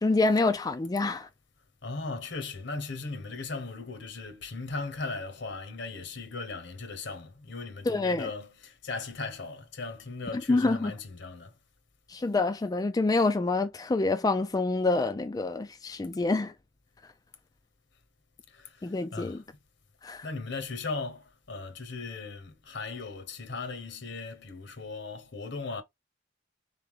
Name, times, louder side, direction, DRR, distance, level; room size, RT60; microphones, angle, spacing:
voice 1, 0.0-1.3 7.9-8.3 10.5-10.9 12.1-16.5 18.8-19.4 20.0-20.3, left 3 dB, 20° left, 0.3 m, -27 dB
voice 2, 1.8-11.5 18.5-19.4 20.2-25.8, left 3 dB, 65° left, 1.0 m, -38 dB
3.8 x 3.4 x 3.6 m
head